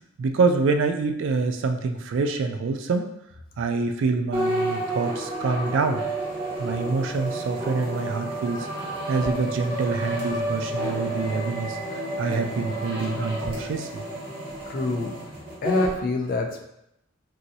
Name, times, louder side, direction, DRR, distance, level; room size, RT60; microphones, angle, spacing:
voice 1, 0.2-3.1 3.6-6.0 6.6-8.7 9.1-14.0, right 4 dB, 65° right, 6 dB, 0.3 m, -26 dB
sound 1, 4.3-16.0, right 1 dB, 25° right, 0.9 m, -30 dB
voice 2, 14.7-15.2 15.6-16.6, left 3 dB, 45° left, 3 dB, 0.4 m, -26 dB
3.0 x 2.7 x 2.6 m, 0.80 s
head